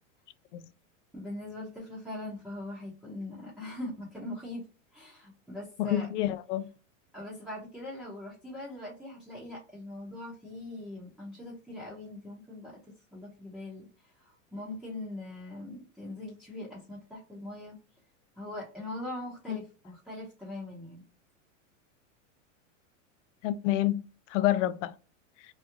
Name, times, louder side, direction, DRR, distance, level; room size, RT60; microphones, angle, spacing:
voice 1, 1.1-4.6 4.9-6.1 7.1-12.8 13.1-13.9 14.2-17.7 18.4-21.0, left 1 dB, ahead, 1.0 m, -41 dB
voice 2, 5.8-6.7 19.5-19.6 23.4-24.0 24.3-24.9, left 13 dB, 65° left, 0.5 m, -28 dB
3.1 x 2.3 x 3.5 m
supercardioid pair, 140°, 39 cm